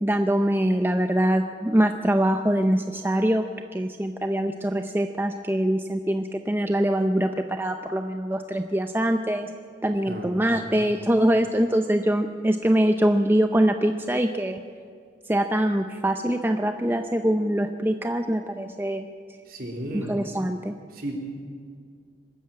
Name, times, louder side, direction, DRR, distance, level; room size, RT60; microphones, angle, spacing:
voice 1, 0.0-3.4 3.7-9.5 9.8-14.6 15.3-19.1 19.9-20.7, right 1 dB, 10° right, 6 dB, 0.6 m, -23 dB
voice 2, 10.1-10.8 19.5-20.1 20.9-21.1, right 1 dB, 50° right, 1 dB, 3.7 m, -34 dB
23.5 x 13.0 x 8.8 m, 2.2 s
head